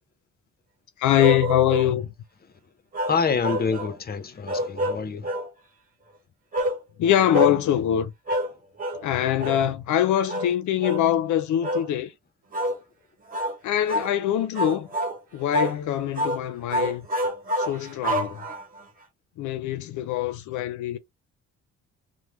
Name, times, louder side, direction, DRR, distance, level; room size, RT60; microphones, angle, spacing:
voice 1, 1.0-2.1 7.0-8.1 9.0-12.1 13.6-14.9 15.3-17.0 17.7-18.4 19.4-21.0, left 11 dB, 75° left, 0.5 m, -23 dB
sound 1, 1.2-1.9 2.9-4.0 4.5-5.5 6.5-6.8 7.3-7.6 8.3-8.5 8.8-9.0 9.4-9.6 10.3-10.5 10.8-11.1 11.6-11.9 12.5-12.8 13.3-13.6 13.9-14.1 14.5-15.2 15.5-15.8 16.1-16.4 16.7-18.8, equal, 30° right, 1.2 m, -27 dB
voice 2, 3.1-5.3, left 5 dB, 30° left, 0.7 m, -26 dB
3.2 x 2.1 x 2.9 m
cardioid pair, 90°, 30 cm